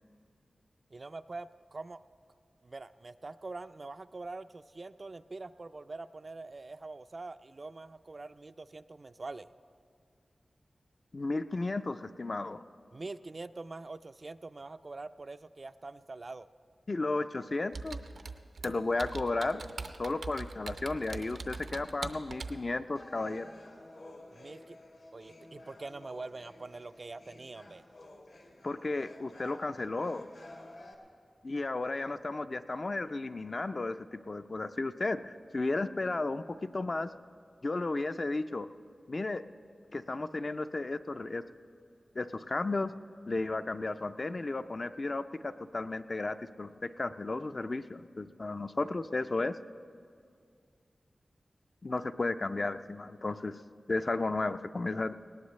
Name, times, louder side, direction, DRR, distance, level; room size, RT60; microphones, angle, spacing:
voice 1, 0.9-2.0 2.6-9.5 12.9-16.5 24.3-24.8 25.1-27.8, right 3 dB, 45° right, 12 dB, 0.3 m, -44 dB
voice 2, 11.1-12.6 16.9-18.0 18.6-19.6 20.0-23.5 28.6-30.3 31.4-37.1 37.6-38.7 39.1-39.4 39.9-41.4 42.1-42.9 43.3-49.6 51.8-53.6 53.9-55.1, left 2 dB, 45° left, 10 dB, 0.4 m, -34 dB
Computer keyboard, 17.7-22.6, right 3 dB, 85° right, 0.6 m, -42 dB
sound 1, 23.0-30.9, left 1 dB, 75° left, 1.8 m, -53 dB
19.5 x 18.0 x 3.2 m, 2.3 s
wide cardioid pair, 100°, 0 cm